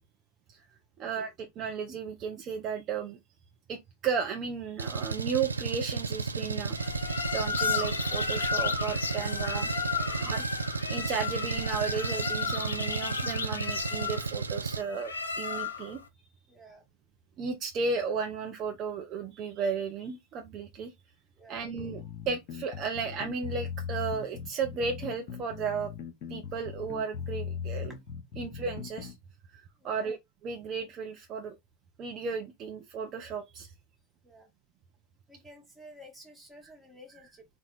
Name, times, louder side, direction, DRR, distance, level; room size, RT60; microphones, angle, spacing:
voice 1, 1.0-3.2 3.7-6.9 7.3-9.7 10.2-16.0 17.4-20.9 21.5-25.9 26.3-27.9 28.4-29.1 29.5-31.6 32.0-33.7, right 5 dB, 35° right, 0.6 m, -34 dB
Engine, 4.8-14.8, right 4 dB, 80° right, 0.4 m, -33 dB
sound 1, 6.7-16.0, left 5 dB, 70° left, 0.6 m, -33 dB
voice 2, 16.5-16.8 21.4-21.7 29.8-30.1 34.2-34.5 35.3-37.5, equal, 5° right, 1.3 m, -52 dB
sound 2, 21.8-29.2, left 7 dB, 50° left, 0.9 m, -39 dB
4.1 x 2.3 x 4.0 m
figure-of-eight pair, 90°, 0 cm